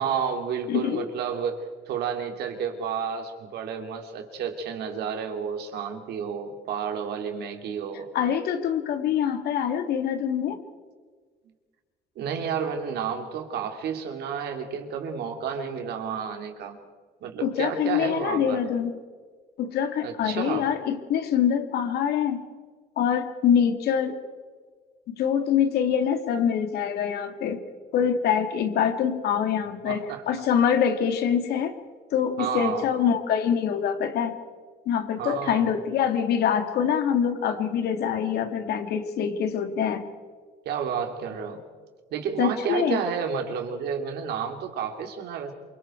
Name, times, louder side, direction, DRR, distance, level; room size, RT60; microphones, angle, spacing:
voice 1, 0.0-8.1 12.2-16.8 17.2-18.6 20.0-20.7 29.8-30.2 32.4-32.9 35.2-35.7 40.6-41.6 42.1-45.5, right 7 dB, 75° right, 4 dB, 3.1 m, -31 dB
voice 2, 0.7-1.1 8.1-10.6 17.4-19.0 19.6-22.4 23.0-24.2 25.1-27.6 27.9-31.7 32.1-34.4 34.9-40.1 42.4-43.0, left 8 dB, 70° left, 7 dB, 2.3 m, -25 dB
27.5 x 24.5 x 4.6 m, 1.5 s
cardioid pair, 110°, 17 cm